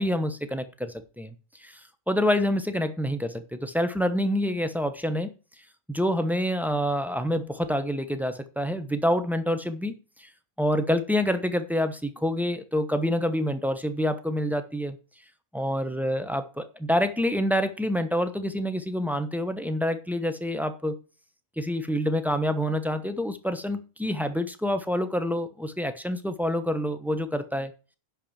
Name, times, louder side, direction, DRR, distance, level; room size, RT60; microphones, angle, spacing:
voice 1, 0.0-1.3 1.6-1.8 2.1-5.3 5.9-9.9 10.2-10.3 10.6-15.0 15.5-21.0 21.6-27.7, equal, ahead, 0.8 m, -27 dB
10.5 x 4.6 x 7.4 m
omnidirectional pair, 1.3 m